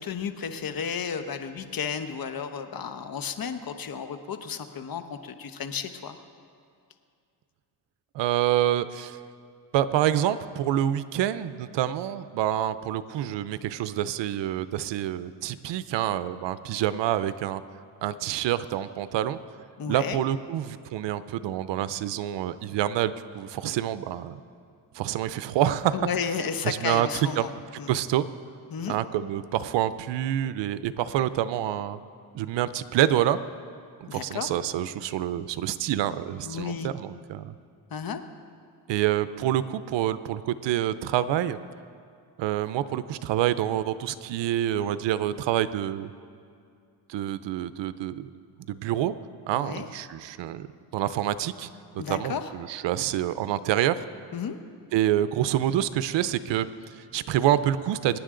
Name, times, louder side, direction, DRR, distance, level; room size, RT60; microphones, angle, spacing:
voice 1, 0.0-6.2 19.8-20.2 25.9-27.5 27.8-27.9 28.7-29.0 34.1-34.5 36.4-36.9 37.9-38.2 49.5-49.9 52.0-52.5 54.3-54.6, left 6 dB, 55° left, 8 dB, 1.1 m, -33 dB
voice 2, 8.1-9.2 9.7-17.6 18.0-19.4 19.9-24.4 24.9-26.0 26.6-27.5 27.9-28.2 28.9-32.0 32.3-33.4 34.0-37.5 38.9-41.6 42.4-46.1 47.1-48.3 48.7-49.1 49.5-50.7 50.9-54.0 54.9-58.2, right 12 dB, 90° right, 14 dB, 0.6 m, -27 dB
25.0 x 9.7 x 3.8 m, 2.3 s
cardioid pair, 75°, 42 cm